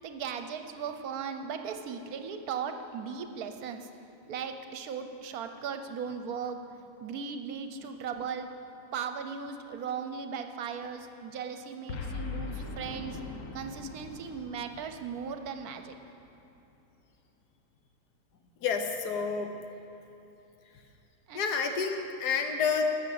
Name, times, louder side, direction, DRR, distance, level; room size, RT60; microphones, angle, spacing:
voice 1, 0.0-3.9 4.3-6.6 7.0-8.5 8.9-13.2 13.5-16.0 21.3-21.5, right 6 dB, 75° right, 7 dB, 1.2 m, -37 dB
Boom, 11.9-16.3, left 4 dB, 60° left, 1.1 m, -41 dB
voice 2, 18.6-19.6 21.3-23.0, left 5 dB, 85° left, 5 dB, 1.5 m, -29 dB
12.5 x 6.4 x 7.7 m, 2.8 s
omnidirectional pair, 1.7 m